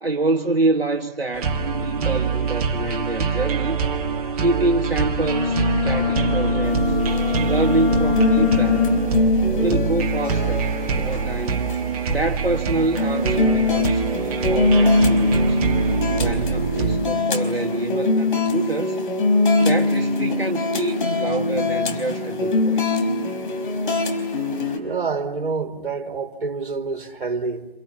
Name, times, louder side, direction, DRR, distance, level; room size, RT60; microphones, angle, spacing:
voice 1, 0.0-3.8 4.4-7.0 7.4-8.9 9.6-11.7 12.1-15.6 16.2-19.0 19.6-23.1, right 2 dB, 90° right, 1.4 m, -26 dB
sound 1, 1.3-17.0, right 6 dB, 40° right, 1.8 m, -24 dB
Bowed string instrument, 5.2-9.3, left 7 dB, 40° left, 7.0 m, -24 dB
sound 2, 6.6-24.8, left 2 dB, 60° left, 4.3 m, -22 dB
voice 2, 24.8-27.7, right 4 dB, 60° right, 2.9 m, -27 dB
28.5 x 28.5 x 7.1 m
figure-of-eight pair, 135°, 29 cm